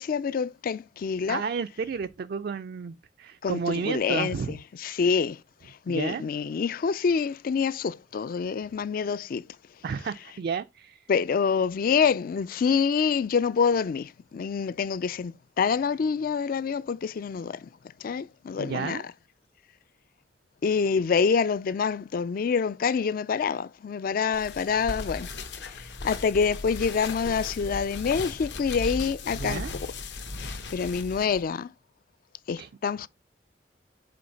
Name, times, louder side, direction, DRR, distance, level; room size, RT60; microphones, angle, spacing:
voice 1, 0.0-1.4 3.4-4.6 4.8-5.4 5.9-9.4 11.1-17.6 18.0-19.0 20.6-25.3 26.0-29.6 30.4-31.7 32.5-33.1, left 6 dB, 50° left, 0.3 m, -26 dB
voice 2, 1.3-4.6 5.9-6.2 9.8-11.1 18.6-19.0 29.4-29.7 30.1-30.2 32.6-32.7, right 5 dB, 55° right, 0.3 m, -32 dB
sound 1, 24.3-31.4, left 3 dB, 70° left, 1.0 m, -37 dB
5.2 x 4.0 x 5.7 m
head